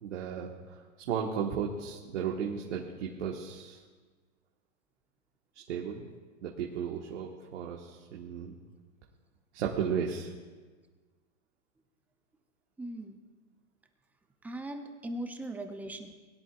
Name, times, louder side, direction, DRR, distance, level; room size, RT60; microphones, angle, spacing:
voice 1, 0.0-3.8 5.7-6.1 6.4-8.5 9.5-10.3, right 7 dB, 70° right, -1 dB, 1.6 m, -35 dB
voice 2, 12.8-13.2 14.4-16.1, right 1 dB, 5° right, 6 dB, 0.5 m, -39 dB
21.0 x 10.5 x 2.5 m, 1.4 s
hypercardioid pair, 140°, 37 cm